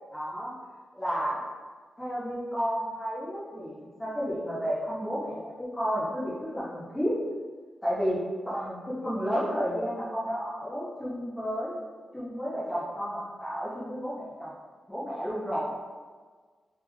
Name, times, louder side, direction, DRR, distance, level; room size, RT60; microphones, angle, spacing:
voice 1, 0.1-0.5 0.9-1.4 2.0-7.1 7.8-8.2 8.4-11.8 12.1-14.5 14.9-15.7, equal, 10° left, -9 dB, 0.6 m, -31 dB
3.5 x 2.4 x 3.0 m, 1.5 s
wide cardioid pair, 170°, 0 cm